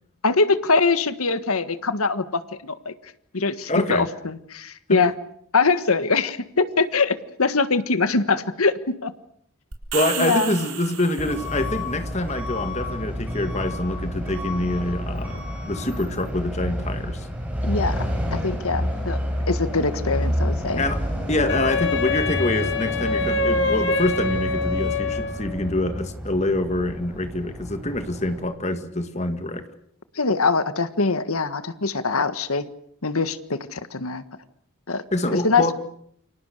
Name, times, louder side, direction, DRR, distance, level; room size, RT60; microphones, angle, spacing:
voice 1, 0.2-2.9 3.3-5.1 5.5-9.1 10.2-10.5 17.6-19.2 19.5-20.8 30.1-32.7 33.0-34.2 34.9-35.0 35.4-35.7, left 4 dB, 90° left, 12 dB, 1.6 m, -23 dB
voice 2, 3.7-4.1 4.9-5.0 9.9-17.3 20.8-21.0 21.3-29.6 35.1-35.7, left 1 dB, 30° left, 8 dB, 2.0 m, -25 dB
sound 1, 9.7-11.6, right 9 dB, 90° right, 4.3 m, -32 dB
Truck / Alarm, 11.2-28.4, equal, 5° right, 7.2 m, -29 dB
Wind instrument woodwind instrument, 21.5-25.6, left 3 dB, 55° left, 2.8 m, -25 dB
29.0 x 25.5 x 6.6 m, 0.68 s
head